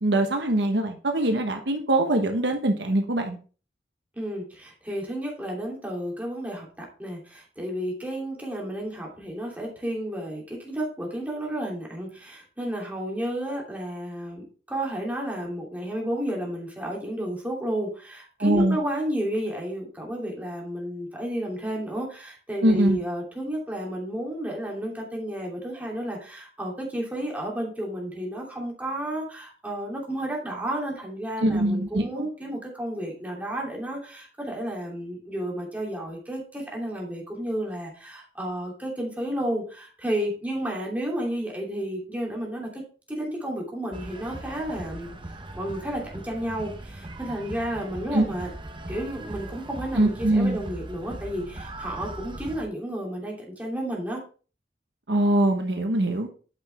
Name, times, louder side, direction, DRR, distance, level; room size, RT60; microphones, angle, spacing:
voice 1, 0.0-3.4 18.4-18.8 22.6-23.0 31.4-32.3 48.1-48.2 49.9-50.6 55.1-56.3, right 1 dB, 70° right, 4 dB, 1.2 m, -23 dB
voice 2, 4.1-42.8 43.1-45.1 45.6-48.5 48.9-54.2, right 1 dB, 10° right, -2 dB, 2.8 m, -32 dB
sound 1, 43.9-52.6, right 1 dB, 30° right, 0.8 m, -39 dB
8.8 x 5.9 x 3.4 m, 0.37 s
head